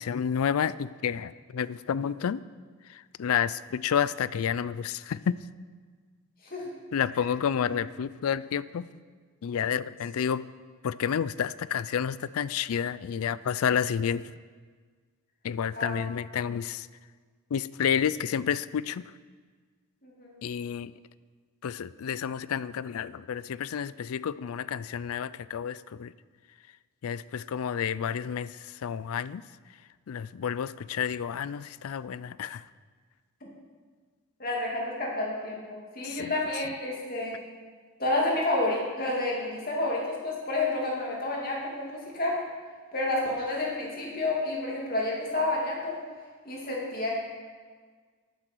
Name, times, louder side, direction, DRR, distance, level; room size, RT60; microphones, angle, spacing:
voice 1, 0.0-2.4 2.9-5.4 6.9-8.9 9.4-10.4 10.8-14.3 15.4-16.9 17.5-19.1 20.4-20.9 21.6-26.1 27.0-29.4 30.1-32.6 36.0-36.3, left 8 dB, 75° left, 17 dB, 0.4 m, -30 dB
voice 2, 20.0-20.3 34.4-37.4 38.0-42.4 42.9-46.0 46.4-47.2, left 2 dB, 40° left, -3 dB, 2.6 m, -30 dB
13.0 x 10.0 x 4.6 m, 1.5 s
head